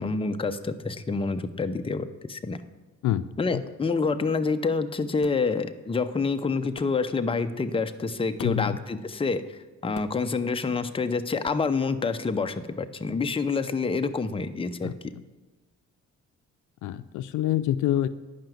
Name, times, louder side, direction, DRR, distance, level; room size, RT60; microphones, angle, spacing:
voice 1, 0.0-2.6 3.4-15.1, left 4 dB, 20° left, 8 dB, 0.7 m, -27 dB
sound 1, 5.2-5.5 6.8-7.0 8.4-8.7 9.9-10.3 11.4-11.7, left 8 dB, 50° left, 0.8 m, -43 dB
voice 2, 8.4-8.8 14.8-14.9 16.8-18.1, left 12 dB, 80° left, 13 dB, 0.5 m, -26 dB
10.0 x 5.9 x 7.8 m, 1.2 s
cardioid pair, 90°, 30 cm